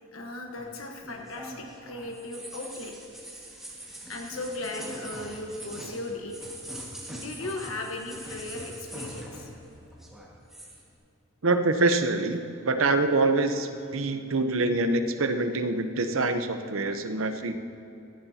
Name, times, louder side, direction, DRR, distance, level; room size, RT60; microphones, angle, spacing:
voice 1, 0.1-2.9 4.1-6.4 7.1-9.6, left 2 dB, 80° left, 1 dB, 1.3 m, -37 dB
sound 1, 0.6-9.7 9.9-10.8, right 1 dB, ahead, 1.8 m, -42 dB
voice 2, 11.4-17.6, right 2 dB, 75° right, 8 dB, 0.8 m, -25 dB
17.0 x 14.0 x 2.9 m, 2.9 s
head